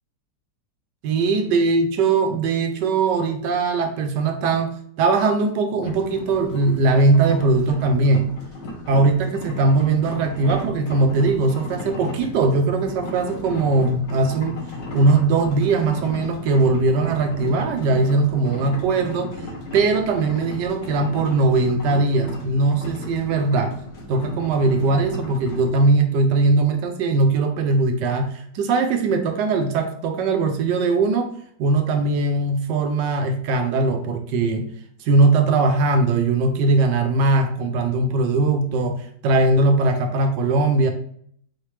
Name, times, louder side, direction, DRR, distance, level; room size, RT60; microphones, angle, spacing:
voice 1, 1.0-4.7 5.0-8.3 8.9-14.6 14.9-19.3 19.7-23.8 24.1-31.3 31.6-34.7 35.0-40.9, right 3 dB, 90° right, 5 dB, 1.3 m, -20 dB
sound 1, 5.8-25.7, left 1 dB, 90° left, 1.8 m, -35 dB
4.2 x 3.3 x 3.2 m, 0.62 s
omnidirectional pair, 1.8 m